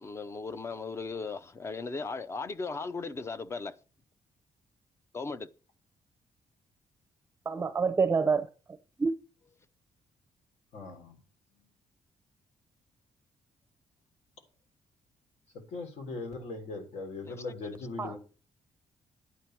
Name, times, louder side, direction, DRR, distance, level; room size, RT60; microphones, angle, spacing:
voice 1, 0.0-3.7 5.1-5.5 17.3-17.4, left 4 dB, 25° left, 0.6 m, -37 dB
voice 2, 7.5-8.5 9.0-9.1 18.0-18.2, right 5 dB, 20° right, 0.6 m, -26 dB
voice 3, 10.7-11.2 11.5-11.7 15.5-18.2, left 3 dB, 75° left, 3.3 m, -40 dB
11.5 x 9.1 x 4.6 m
cardioid pair, 165°, 12 cm